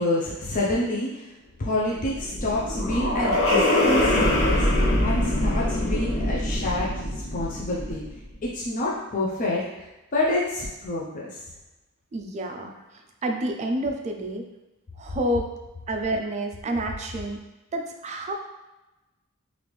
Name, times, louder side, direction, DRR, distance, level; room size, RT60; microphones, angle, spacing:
voice 1, 0.0-1.3 1.6-8.0 8.4-9.8 10.1-11.4, left 1 dB, 35° left, -5 dB, 0.5 m, -28 dB
sound 1, 1.9-8.2, left 1 dB, 65° left, 0.9 m, -24 dB
voice 2, 12.1-12.7 13.2-14.4 15.0-15.5 15.9-17.4 17.7-18.3, right 1 dB, 30° right, 4 dB, 0.3 m, -28 dB
3.3 x 2.5 x 3.1 m, 1.0 s
head